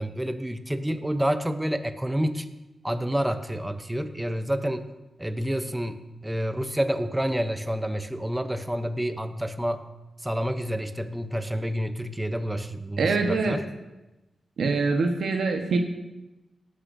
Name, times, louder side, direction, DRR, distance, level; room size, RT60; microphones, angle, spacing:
voice 1, 0.0-2.5 2.8-4.9 5.2-9.9 10.2-13.7, equal, 5° right, 9 dB, 0.6 m, -28 dB
voice 2, 13.0-13.6 14.6-15.8, right 4 dB, 80° right, 3 dB, 1.1 m, -24 dB
17.5 x 9.8 x 2.6 m, 1.0 s
wide cardioid pair, 135°, 0 cm